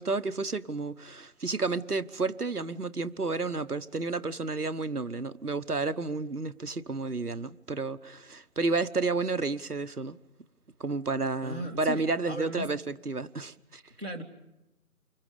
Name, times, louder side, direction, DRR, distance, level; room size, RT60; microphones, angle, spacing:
voice 1, 0.0-10.2 10.8-13.8, right 3 dB, 80° right, 1.2 m, -31 dB
voice 2, 11.4-12.7 14.0-14.2, equal, 40° right, 2.5 m, -36 dB
29.0 x 24.5 x 5.2 m
figure-of-eight pair, 175°, 45 cm